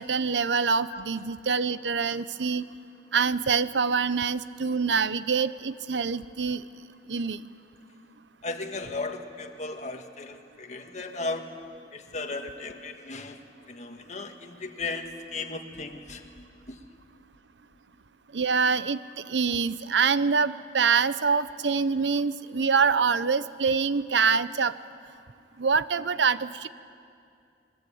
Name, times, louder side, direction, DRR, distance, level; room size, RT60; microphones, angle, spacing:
voice 1, 0.0-2.6 3.1-6.6 7.1-7.4 18.3-19.0 19.3-24.7 25.6-26.7, right 5 dB, 90° right, 15 dB, 0.8 m, -25 dB
voice 2, 8.4-11.5 11.9-13.4 13.7-16.8 18.7-18.9, left 3 dB, 40° left, 4 dB, 1.7 m, -36 dB
26.5 x 21.5 x 8.6 m, 2.4 s
head